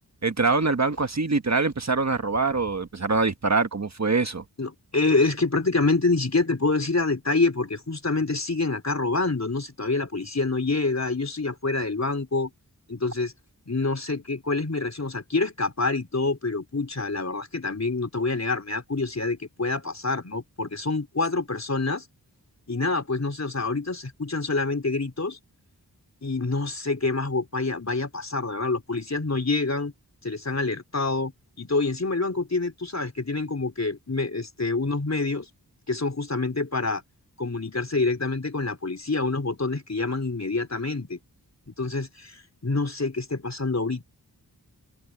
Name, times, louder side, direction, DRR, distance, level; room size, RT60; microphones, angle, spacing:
voice 1, 0.2-4.4, right 3 dB, 45° right, 1.5 m, -24 dB
voice 2, 4.6-12.5 12.9-13.3 13.7-22.1 22.7-25.4 26.2-29.9 30.2-31.3 31.6-35.5 35.9-37.0 37.4-41.2 41.7-44.0, left 3 dB, 45° left, 4.0 m, -26 dB
open air
wide cardioid pair, 50°, 38 cm